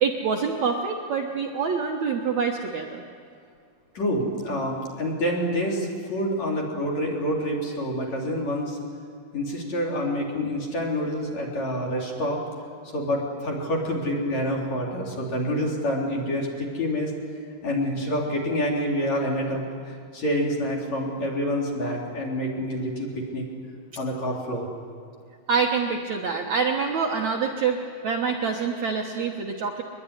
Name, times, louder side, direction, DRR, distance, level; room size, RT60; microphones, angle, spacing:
voice 1, 0.0-3.0 25.5-29.8, right 5 dB, 85° right, 1 dB, 1.6 m, -26 dB
voice 2, 3.9-8.8 9.3-12.4 12.9-17.1 17.6-23.5 24.0-24.7, equal, 40° left, -2 dB, 4.7 m, -27 dB
23.0 x 22.5 x 10.0 m, 2.4 s
omnidirectional pair, 5.5 m